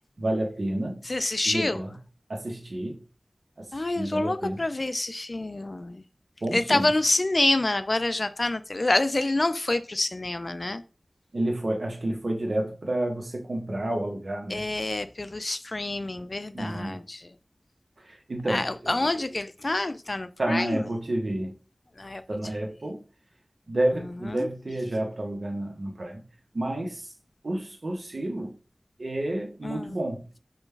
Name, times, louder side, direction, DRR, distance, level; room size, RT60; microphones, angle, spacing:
voice 1, 0.2-1.0 1.5-1.9 2.3-3.0 3.6-4.6 6.4-6.9 11.3-14.6 16.5-17.0 18.0-18.7 20.4-21.5 22.3-23.0 23.7-26.2 26.5-27.1 27.4-28.5 29.0-30.2, right 1 dB, 75° right, 1.0 m, -30 dB
voice 2, 1.0-1.8 3.7-6.0 6.5-10.8 14.5-17.3 18.4-20.9 22.0-22.2 24.2-24.5 29.6-30.0, left 2 dB, 55° left, 0.3 m, -27 dB
5.1 x 2.3 x 3.3 m
wide cardioid pair, 50°, 0 cm